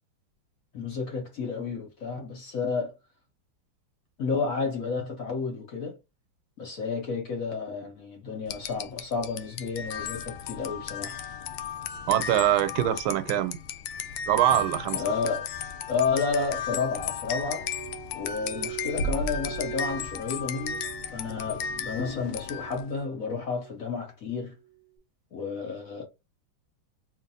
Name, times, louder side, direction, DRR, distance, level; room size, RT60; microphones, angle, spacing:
voice 1, 0.7-2.9 4.2-6.0 6.6-11.2 14.9-15.5 15.9-17.7 18.1-20.8 21.1-24.5 25.3-26.0, left 5 dB, 60° left, 0.9 m, -31 dB
sound 1, 8.5-22.9, left 6 dB, 90° left, 1.4 m, -35 dB
voice 2, 12.1-13.6 14.3-15.0, right 12 dB, 85° right, 1.4 m, -23 dB
Glass, 17.5-22.0 22.3-23.0 23.4-23.9 24.5-24.8, right 13 dB, 40° right, 0.9 m, -43 dB
4.3 x 3.1 x 2.6 m
omnidirectional pair, 2.2 m